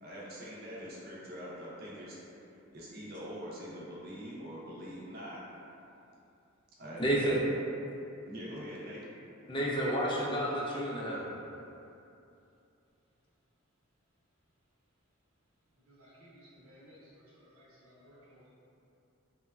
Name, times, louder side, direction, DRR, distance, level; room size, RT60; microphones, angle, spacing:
voice 1, 0.0-2.2 2.7-5.4 6.8-7.5 8.2-9.0, equal, 45° right, -6 dB, 0.5 m, -44 dB
voice 2, 7.0-7.4 9.5-11.3, right 1 dB, 25° left, -4 dB, 0.3 m, -30 dB
voice 3, 15.9-18.5, equal, 85° right, -8 dB, 0.7 m, -58 dB
3.0 x 2.1 x 2.3 m, 2.7 s
head